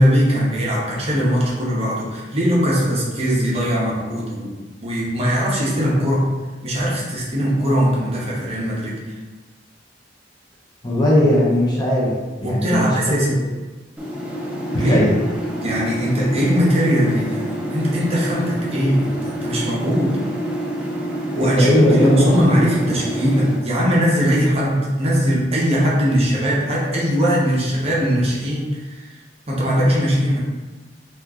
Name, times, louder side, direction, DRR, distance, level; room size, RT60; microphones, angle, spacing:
voice 1, 0.0-4.5 4.8-6.2 6.6-9.2 12.4-13.3 14.8-15.0 15.6-20.2 21.3-29.1 29.5-30.4, equal, 35° right, -5 dB, 0.7 m, -20 dB
voice 2, 10.8-12.1 12.4-13.2 14.7-15.1 21.3-22.4, left 1 dB, 25° left, -5 dB, 0.7 m, -18 dB
sound 1, 14.0-23.6, right 1 dB, 5° right, 0.4 m, -27 dB
2.9 x 2.4 x 3.6 m, 1.3 s
head